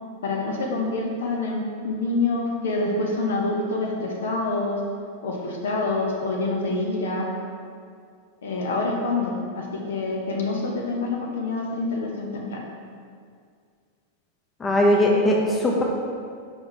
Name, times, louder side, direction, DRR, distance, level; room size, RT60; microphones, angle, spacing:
voice 1, 0.2-4.8 5.2-7.3 8.4-12.6, left 2 dB, 60° left, 0 dB, 0.8 m, -26 dB
voice 2, 14.6-15.8, left 1 dB, 20° left, -1 dB, 0.8 m, -19 dB
6.1 x 4.9 x 3.2 m, 2.2 s
figure-of-eight pair, 90°, 0 cm